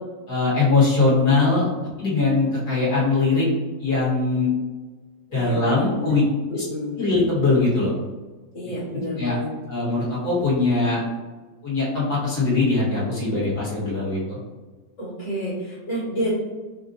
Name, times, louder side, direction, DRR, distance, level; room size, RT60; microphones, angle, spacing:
voice 1, 0.3-1.7 2.0-3.5 3.8-4.5 5.3-6.2 6.5-6.6 7.0-7.9 8.9-9.4 9.7-11.0 11.6-14.4, left 3 dB, 55° left, -8 dB, 1.9 m, -21 dB
voice 2, 5.3-6.2 6.5-7.0 8.5-9.5 15.0-16.3, equal, 80° left, -9 dB, 2.2 m, -29 dB
5.1 x 2.3 x 2.6 m, 1.3 s
omnidirectional pair, 2.0 m